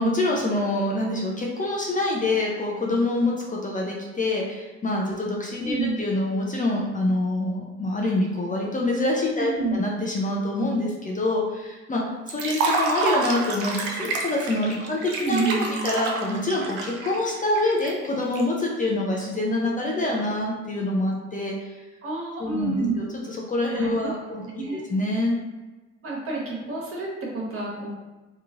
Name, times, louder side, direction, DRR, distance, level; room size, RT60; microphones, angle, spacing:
voice 1, 0.0-21.7 22.4-24.4 24.7-25.4, left 2 dB, 25° left, -2 dB, 0.6 m, -26 dB
voice 2, 5.6-6.0 9.2-9.7 14.8-14.9 15.2-15.8 22.0-22.9 23.7-24.8 26.0-27.9, right 4 dB, 45° right, -3 dB, 1.1 m, -29 dB
Liquid, 12.3-18.4, right 3 dB, 85° right, 0.5 m, -28 dB
3.0 x 2.4 x 2.4 m, 1.2 s
hypercardioid pair, 60°, 31 cm